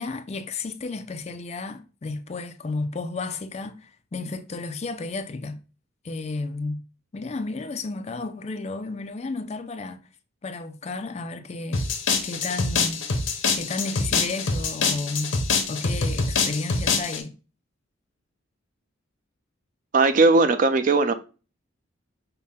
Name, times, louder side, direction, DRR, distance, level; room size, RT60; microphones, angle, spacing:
voice 1, 0.0-5.6 6.0-6.8 7.1-10.0 10.4-11.8 12.2-13.0 13.5-15.4 15.7-17.3, left 3 dB, 35° left, 0.4 m, -32 dB
sound 1, 11.7-17.2, left 4 dB, 70° left, 0.9 m, -25 dB
voice 2, 19.9-21.1, right 3 dB, 40° right, 0.4 m, -18 dB
5.5 x 2.1 x 3.4 m
head